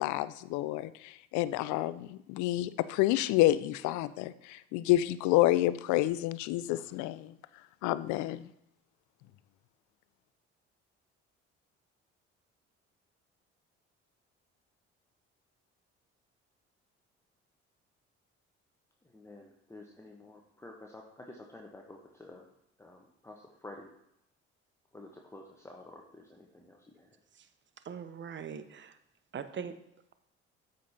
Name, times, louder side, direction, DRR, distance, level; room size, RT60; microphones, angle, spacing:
voice 1, 0.0-7.3 7.8-8.5, left 15 dB, 60° left, 16 dB, 0.5 m, -29 dB
voice 2, 19.1-22.4 22.8-23.9 24.9-27.2, left 2 dB, 10° left, 0 dB, 1.1 m, -50 dB
voice 3, 27.9-28.9 29.3-29.7, right 7 dB, 35° right, 11 dB, 0.8 m, -40 dB
13.5 x 5.3 x 2.8 m, 0.78 s
figure-of-eight pair, 50°, 34 cm